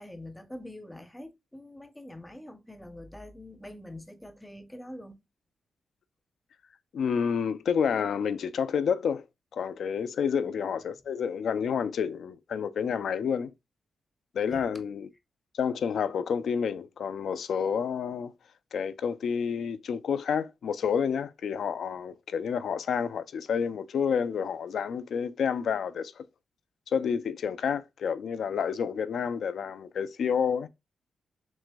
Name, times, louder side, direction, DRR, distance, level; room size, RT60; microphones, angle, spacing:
voice 1, 0.0-5.2 10.3-10.5 14.5-14.6, left 1 dB, 5° left, 0.5 m, -45 dB
voice 2, 6.9-9.2 9.5-13.5 14.3-15.1 15.5-18.3 18.7-26.2 26.9-30.7, left 7 dB, 65° left, 0.4 m, -29 dB
6.0 x 2.6 x 2.2 m
wide cardioid pair, 130°, 0 cm